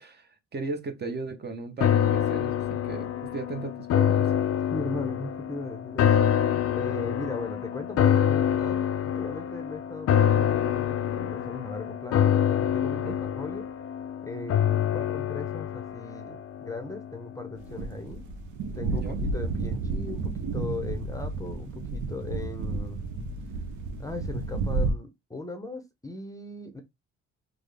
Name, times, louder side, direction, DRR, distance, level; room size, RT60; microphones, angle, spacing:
voice 1, 0.0-4.3 13.0-13.2 18.9-19.2, right 4 dB, 35° right, 0.7 m, -36 dB
sound 1, 1.8-17.1 17.5-17.6, left 9 dB, 55° left, 0.4 m, -26 dB
voice 2, 4.7-13.7 14.2-18.2 18.8-23.0 24.0-26.8, left 3 dB, 10° left, 0.6 m, -38 dB
sound 2, 17.6-24.9, right 3 dB, 75° right, 0.8 m, -31 dB
3.6 x 2.0 x 3.3 m
cardioid pair, 90°, 30 cm